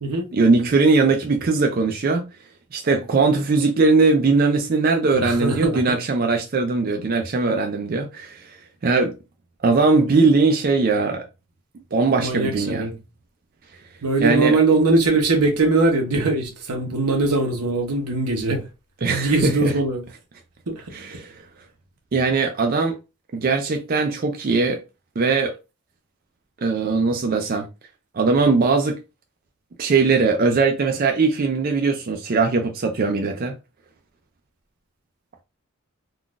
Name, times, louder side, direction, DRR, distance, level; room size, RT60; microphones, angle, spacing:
voice 1, 0.3-2.3 2.7-8.5 8.8-9.2 9.6-11.2 11.9-12.9 14.2-14.6 19.0-19.7 20.9-21.3 22.1-23.0 23.3-24.8 25.2-25.5 26.6-27.7 28.1-29.0 29.8-33.5, right 4 dB, 40° right, 0.4 m, -20 dB
voice 2, 5.2-5.8 12.2-12.9 14.0-18.6 19.1-20.0 20.7-20.8, right 3 dB, 90° right, 0.8 m, -21 dB
3.8 x 2.4 x 2.3 m
head